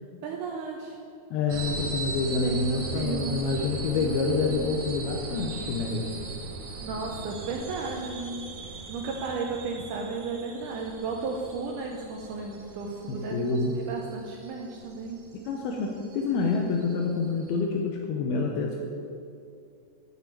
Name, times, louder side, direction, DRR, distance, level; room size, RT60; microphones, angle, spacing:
voice 1, 0.2-1.0 2.3-3.4 3.9-4.8 6.8-8.5 8.9-15.2, right 4 dB, 85° right, 1 dB, 1.8 m, -34 dB
voice 2, 1.3-6.1 13.1-13.7 15.5-18.8, left 4 dB, 80° left, 1 dB, 2.5 m, -27 dB
sound 1, 1.5-17.6, right 3 dB, 65° right, 1.9 m, -39 dB
9.4 x 5.9 x 8.3 m, 2.5 s
omnidirectional pair, 4.6 m